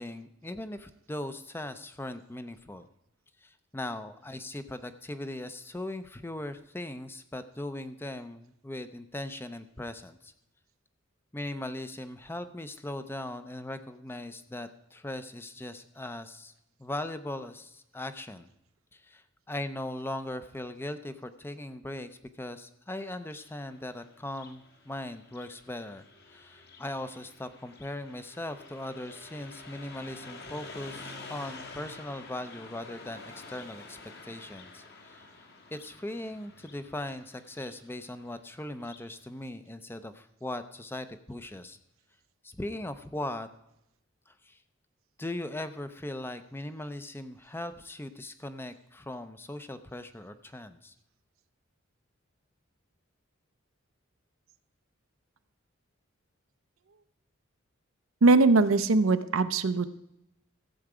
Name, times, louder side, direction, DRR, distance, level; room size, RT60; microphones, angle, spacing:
voice 1, 0.0-2.9 3.4-10.3 11.3-16.5 16.8-18.5 18.9-35.5 35.7-41.8 42.4-43.5 44.3-44.6 45.2-50.9, left 1 dB, 10° left, 10 dB, 0.5 m, -39 dB
Car passing by, 23.2-39.1, left 3 dB, 50° left, 1.5 m, -49 dB
voice 2, 58.2-59.9, right 3 dB, 80° right, 11 dB, 0.7 m, -21 dB
14.5 x 7.8 x 4.9 m, 0.83 s
head